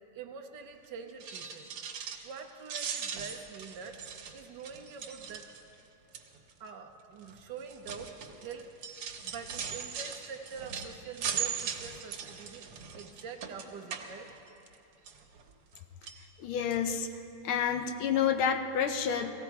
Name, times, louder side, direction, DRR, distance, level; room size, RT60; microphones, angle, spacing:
voice 1, 0.1-1.7 2.0-4.0 4.3-5.5 6.6-8.7 9.0-14.3, right 6 dB, 65° right, 5 dB, 1.3 m, -45 dB
sound 1, 1.1-2.4 2.7-5.8 6.1-6.5 7.2-14.8 15.1-15.8 16.0-16.2 16.7-16.8 17.1-17.2, right 7 dB, 85° right, 1.9 m, -39 dB
voice 2, 16.4-17.1 17.4-19.3, left 7 dB, 75° left, 7 dB, 1.6 m, -29 dB
17.0 x 15.5 x 4.7 m, 2.8 s
omnidirectional pair, 2.3 m